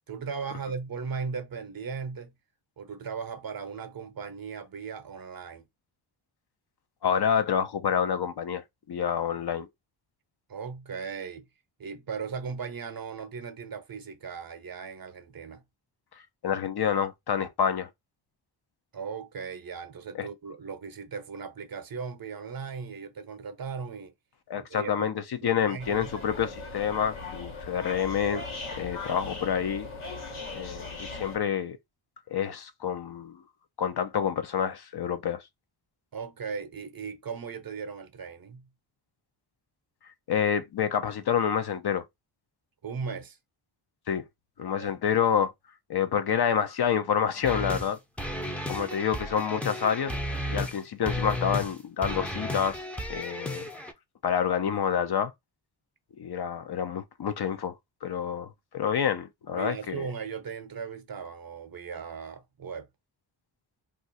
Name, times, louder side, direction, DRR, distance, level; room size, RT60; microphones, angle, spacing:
voice 1, 0.1-2.3 2.8-5.6 10.5-11.5 11.8-15.6 18.9-24.1 24.5-25.1 25.4-26.1 36.1-38.7 42.8-43.4 44.8-44.9 48.7-49.0 59.5-62.9, right 5 dB, 45° right, 0.7 m, -37 dB
voice 2, 7.0-9.7 16.4-17.9 20.2-20.3 24.5-28.4 28.8-29.9 30.5-31.8 32.3-33.4 33.8-35.4 40.3-42.0 44.1-44.2 44.6-45.5 45.9-48.0 48.7-50.1 50.5-52.8 53.1-53.7 54.2-55.3 56.2-57.7 58.0-58.5 58.7-60.1, left 8 dB, 55° left, 0.6 m, -28 dB
sound 1, 25.8-31.4, left 3 dB, 80° left, 1.3 m, -39 dB
sound 2, 47.4-47.9 48.2-50.8 51.0-51.7 52.0-53.9, left 1 dB, 5° left, 0.5 m, -33 dB
2.5 x 2.4 x 4.0 m
cardioid pair, 75°, 49 cm